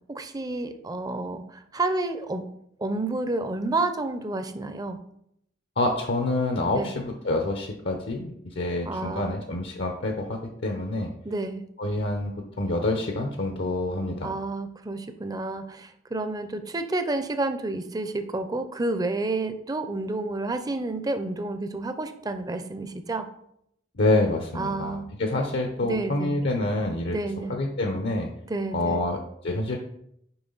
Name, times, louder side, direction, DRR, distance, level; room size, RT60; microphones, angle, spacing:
voice 1, 0.1-2.4 2.8-5.0 6.8-6.9 8.9-9.4 11.2-11.6 14.2-23.3 24.6-25.1 25.8-26.3 27.1-27.5 28.5-29.1, right 2 dB, 20° right, 9 dB, 0.5 m, -30 dB
voice 2, 5.8-11.1 11.8-12.3 12.6-14.3 23.9-27.2 27.5-28.3 28.7-29.8, left 2 dB, 65° left, 3 dB, 0.8 m, -27 dB
7.0 x 4.8 x 3.9 m, 0.73 s
head